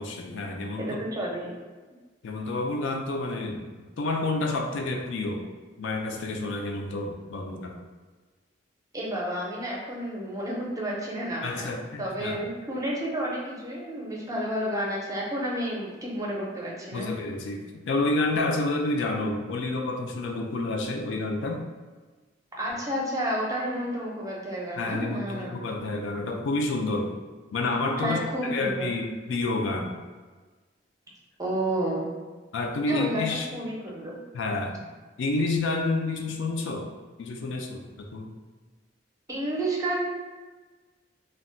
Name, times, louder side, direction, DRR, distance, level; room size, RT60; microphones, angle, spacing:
voice 1, 0.0-0.9 2.2-3.7 4.0-5.4 5.8-7.8 11.4-12.4 16.9-21.6 24.8-27.1 27.5-29.9 32.5-33.5 34.3-34.9 35.2-36.9 37.2-38.3, left 2 dB, 80° left, 2 dB, 0.4 m, -29 dB
voice 2, 0.8-1.5 8.9-11.7 12.0-17.1 22.5-25.6 28.0-28.9 31.4-32.1 32.9-34.2 39.3-40.1, right 1 dB, 20° right, -4 dB, 0.5 m, -31 dB
2.2 x 2.1 x 3.7 m, 1.3 s
head